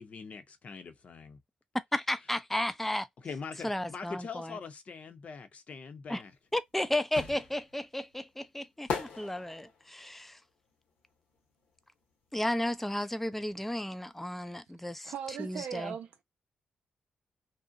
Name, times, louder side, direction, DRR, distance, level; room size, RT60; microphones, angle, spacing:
voice 1, 0.0-1.4 3.2-6.3, left 5 dB, 55° left, 0.7 m, -43 dB
voice 2, 1.9-3.1 3.6-4.6 6.1-6.2 6.5-10.4 12.3-15.1 15.4-15.9, left 1 dB, 10° left, 0.4 m, -33 dB
sound 1, 6.3-12.1 12.4-14.0 14.2-14.3, left 5 dB, 85° left, 0.9 m, -41 dB
voice 3, 15.0-16.2, right 8 dB, 75° right, 0.4 m, -38 dB
2.6 x 2.0 x 2.5 m
supercardioid pair, 60°, 3 cm